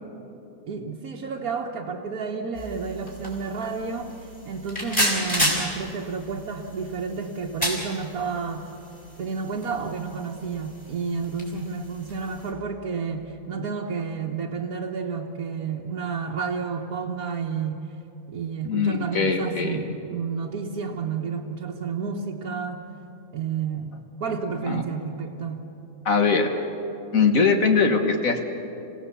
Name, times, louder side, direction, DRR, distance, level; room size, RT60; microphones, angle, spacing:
voice 1, 0.7-8.7 9.2-17.9 18.3-22.8 23.3-25.6, right 5 dB, 90° right, -2 dB, 1.6 m, -31 dB
sound 1, 2.5-12.5, equal, 25° left, 4.6 m, -32 dB
voice 2, 18.6-19.8 24.7-24.8 26.1-26.5 27.1-28.4, left 5 dB, 70° left, 4 dB, 1.8 m, -21 dB
27.5 x 17.0 x 6.9 m, 2.9 s
omnidirectional pair, 1.5 m